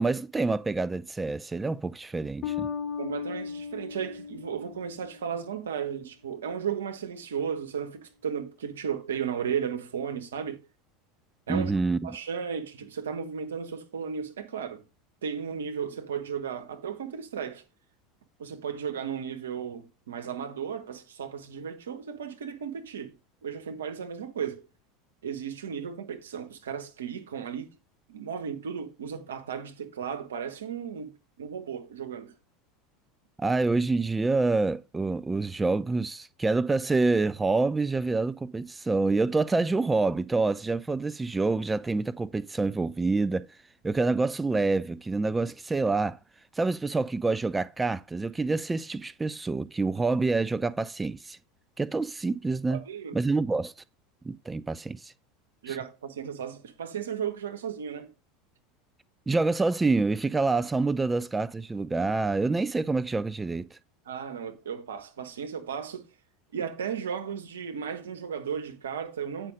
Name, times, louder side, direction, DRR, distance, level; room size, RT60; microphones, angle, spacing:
voice 1, 0.0-2.7 11.5-12.1 33.4-43.5 43.8-46.2 46.6-51.4 51.8-52.8 53.1-53.7 54.3-55.1 55.7-55.8 59.3-63.8, right 3 dB, 15° right, 0.4 m, -27 dB
Bass guitar, 2.4-5.4, left 7 dB, 35° left, 2.1 m, -36 dB
voice 2, 3.0-10.6 11.5-11.7 12.0-14.8 15.2-17.6 18.4-23.1 23.4-24.7 25.2-27.7 28.1-32.3 52.7-53.2 55.6-58.1 64.0-66.0 66.5-69.5, right 7 dB, 75° right, 1.2 m, -35 dB
8.9 x 5.6 x 4.9 m
figure-of-eight pair, 80°, 0 cm